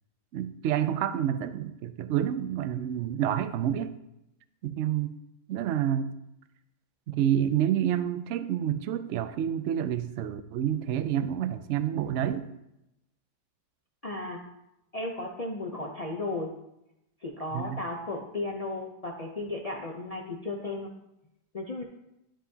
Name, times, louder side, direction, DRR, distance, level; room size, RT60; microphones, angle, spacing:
voice 1, 0.3-3.9 4.6-5.1 5.5-6.1 7.1-12.5 17.5-17.8, right 10 dB, 80° right, 11 dB, 0.6 m, -28 dB
voice 2, 14.0-14.4 14.9-16.5 17.2-20.9 21.5-21.8, left 2 dB, 70° left, 0 dB, 0.3 m, -34 dB
13.0 x 4.9 x 2.8 m, 0.86 s
omnidirectional pair, 1.8 m